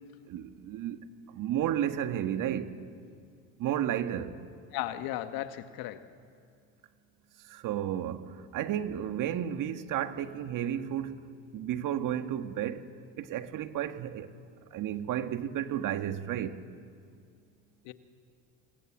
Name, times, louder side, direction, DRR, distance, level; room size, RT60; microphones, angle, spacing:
voice 1, 0.3-1.0 1.3-2.7 3.6-4.4 7.4-11.2 11.5-12.9 13.2-14.3 14.7-16.6, right 10 dB, 55° right, 1.8 m, -32 dB
voice 2, 4.7-6.1 17.8-17.9, left 13 dB, 65° left, 1.7 m, -35 dB
27.0 x 26.5 x 7.5 m
hypercardioid pair, 75°, 38 cm